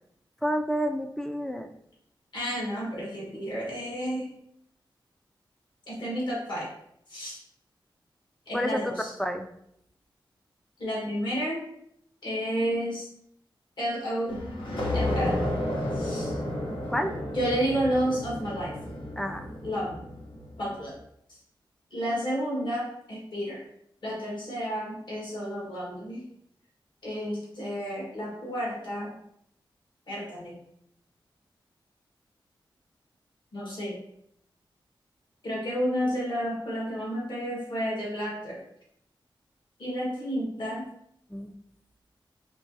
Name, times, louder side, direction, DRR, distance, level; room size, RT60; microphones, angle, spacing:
voice 1, 0.4-1.7 8.5-8.9 9.2-9.5 16.9-17.1 19.2-19.4 40.7-40.8 41.3-41.5, equal, 5° left, 6 dB, 0.3 m, -29 dB
voice 2, 2.3-4.3 5.9-6.7 7.1-7.3 8.5-9.1 10.8-11.6 12.2-13.1 13.8-14.4 14.9-15.4 15.9-16.4 17.3-18.7 19.6-19.9 20.6-20.9 21.9-23.6 24.0-26.2 27.0-29.1 30.1-30.6 33.5-34.0 35.4-38.6 39.8-40.8, equal, 60° left, -5 dB, 1.5 m, -31 dB
sound 1, 14.3-20.6, left 1 dB, 85° left, 1.0 m, -32 dB
4.6 x 3.0 x 2.7 m, 0.74 s
wide cardioid pair, 130°, 9 cm